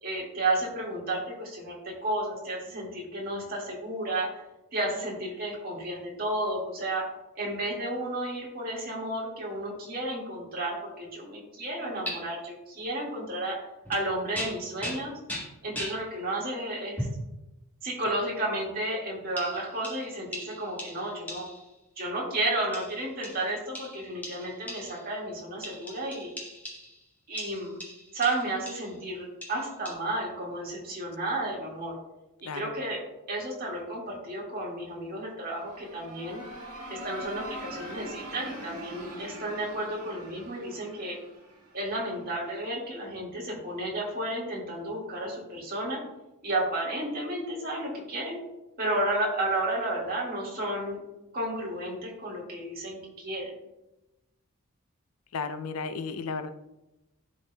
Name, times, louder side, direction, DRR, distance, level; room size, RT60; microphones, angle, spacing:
voice 1, 0.0-4.3 4.7-7.0 7.4-13.6 13.9-15.2 15.6-17.1 17.8-21.5 22.0-26.3 27.3-27.8 28.1-31.9 32.5-33.0 33.3-36.4 36.9-41.1 41.7-46.0 46.4-48.4 48.8-51.0 51.3-53.5, right 1 dB, 45° right, -3 dB, 1.9 m, -32 dB
sound 1, 12.1-12.2 13.9-14.1 14.3-16.0 17.0-17.3 18.0-18.2 19.4-21.7 22.7-25.1 25.6-27.0 27.4-29.0 29.4-29.9, equal, 10° left, 1.4 m, -39 dB
sound 2, 35.4-42.2, right 1 dB, 85° right, 1.7 m, -43 dB
voice 2, 55.3-56.5, left 4 dB, 75° left, 10 dB, 0.5 m, -33 dB
11.5 x 4.2 x 2.3 m, 0.96 s
head